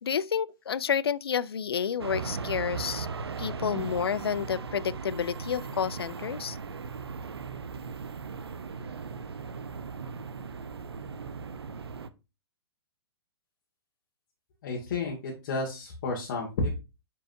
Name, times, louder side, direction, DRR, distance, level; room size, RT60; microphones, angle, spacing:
voice 1, 0.0-3.1 3.4-6.6, left 7 dB, 65° left, 0.4 m, -30 dB
sound 1, 2.0-12.1, right 5 dB, 65° right, 0.7 m, -38 dB
voice 2, 14.6-16.7, left 3 dB, 45° left, 1.8 m, -31 dB
8.9 x 4.7 x 2.5 m
figure-of-eight pair, 115°, 14 cm